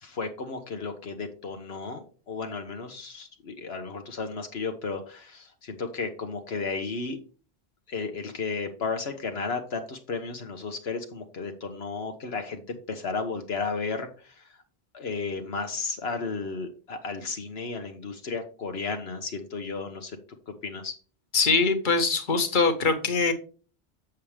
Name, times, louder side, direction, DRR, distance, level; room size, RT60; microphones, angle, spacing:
voice 1, 0.0-7.2 7.9-14.5 14.9-20.2 20.5-20.9, left 4 dB, 75° left, 1.3 m, -33 dB
voice 2, 21.3-23.3, left 4 dB, 50° left, 1.4 m, -23 dB
7.4 x 7.2 x 3.3 m
omnidirectional pair, 1.1 m